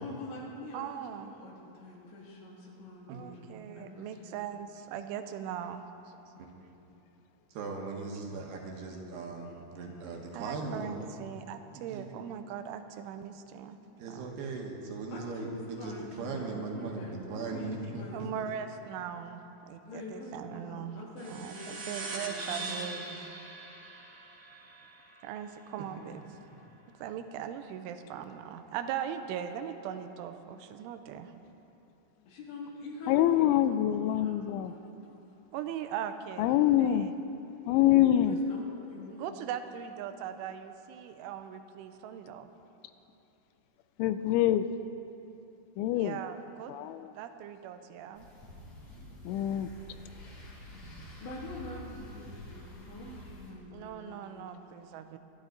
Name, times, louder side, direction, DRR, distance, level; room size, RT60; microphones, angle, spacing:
voice 1, 0.0-4.4 15.1-18.4 19.8-23.2 32.3-35.2 37.9-39.3 51.2-54.5, left 2 dB, 65° left, -3 dB, 4.4 m, -45 dB
voice 2, 0.7-1.3 3.1-5.8 10.3-13.8 14.1-14.3 18.1-23.2 25.2-26.2 27.0-31.3 35.5-36.5 36.8-37.1 39.1-42.5 45.9-46.7 47.1-48.3 53.7-55.2, right 9 dB, 85° right, 8 dB, 3.1 m, -40 dB
voice 3, 7.5-11.1 11.7-12.0 14.0-18.3, right 4 dB, 65° right, 0 dB, 3.0 m, -39 dB
sound 1, 21.2-26.1, right 3 dB, 50° right, 2.6 m, -42 dB
voice 4, 33.1-34.7 36.4-37.1 37.7-38.4 44.0-44.7 45.8-46.2 46.7-47.1 49.3-49.7, left 12 dB, 85° left, 11 dB, 2.8 m, -25 dB
sound 2, 48.1-53.5, left 1 dB, 35° left, 2.9 m, -48 dB
24.0 x 11.5 x 3.9 m, 3.0 s
omnidirectional pair, 5.6 m